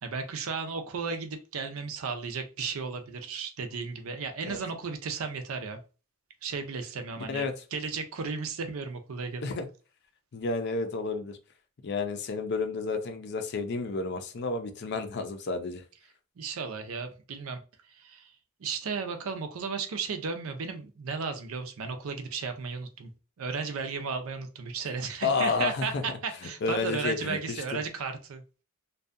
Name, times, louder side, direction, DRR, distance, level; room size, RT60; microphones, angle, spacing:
voice 1, 0.0-5.8 6.4-9.4 16.4-17.6 17.9-18.3 18.6-23.1 23.4-28.4, right 5 dB, 80° right, 0.5 m, -34 dB
voice 2, 10.3-11.4 11.8-15.8 25.2-26.0 26.6-27.8, left 4 dB, 55° left, 0.4 m, -31 dB
2.6 x 2.2 x 2.4 m
head